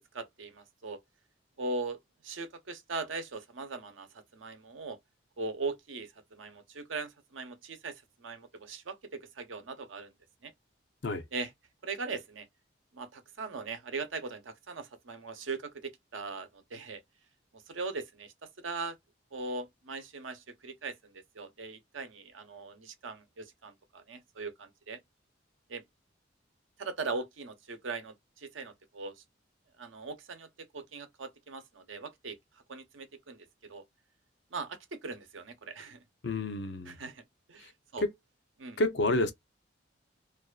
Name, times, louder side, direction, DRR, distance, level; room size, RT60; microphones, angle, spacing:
voice 1, 0.1-1.0 1.6-2.0 2.2-5.0 5.4-10.1 10.4-10.5 11.3-11.5 11.8-12.5 12.9-17.0 17.5-19.0 19.3-25.0 25.7-25.8 26.8-29.1 29.8-30.5 30.7-32.4 32.7-33.8 34.5-36.0 36.9-37.2 37.5-38.0 38.6-38.8, right 3 dB, 85° right, 0.7 m, -40 dB
voice 2, 36.2-37.0 37.6-37.7 38.0-38.1 38.8-39.3, left 2 dB, 65° left, 0.6 m, -29 dB
2.5 x 2.4 x 2.3 m
head